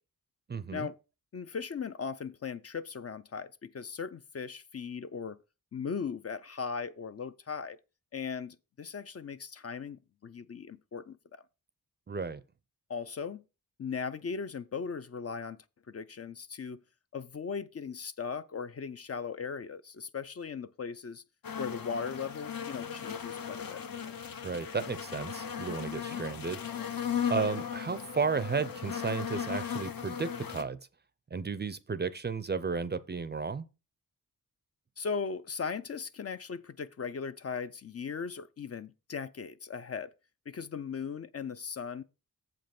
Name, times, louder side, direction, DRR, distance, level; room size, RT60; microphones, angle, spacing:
voice 1, 0.5-0.9 12.1-12.4 24.4-26.6 27.3-30.8 31.3-33.6, right 5 dB, 30° right, 0.5 m, -33 dB
voice 2, 1.3-5.4 5.7-7.8 8.1-11.4 12.9-13.4 13.8-16.8 17.1-21.2 21.6-23.8 26.0-26.2 35.0-40.1 40.5-42.0, left 6 dB, 45° left, 0.4 m, -38 dB
sound 1, 21.4-30.6, left 8 dB, 70° left, 0.9 m, -37 dB
7.5 x 5.3 x 5.8 m
wide cardioid pair, 180°, 36 cm